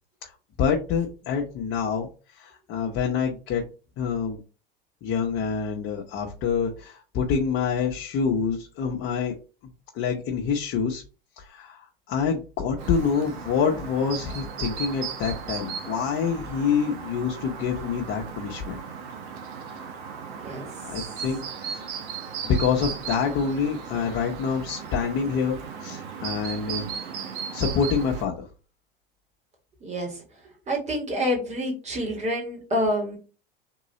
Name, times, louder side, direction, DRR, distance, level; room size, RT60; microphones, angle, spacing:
voice 1, 0.6-3.6 4.0-4.4 5.0-9.3 9.9-11.0 11.4-18.8 20.8-21.9 22.4-27.1 27.5-28.5, left 6 dB, 45° left, 0 dB, 1.0 m, -27 dB
Chirp tweet, 12.8-28.3, right 7 dB, 55° right, 1.0 m, -36 dB
voice 2, 29.8-30.2 30.7-33.2, equal, 25° right, -1 dB, 2.1 m, -27 dB
3.8 x 2.9 x 4.1 m, 0.35 s
hypercardioid pair, 90°, 29 cm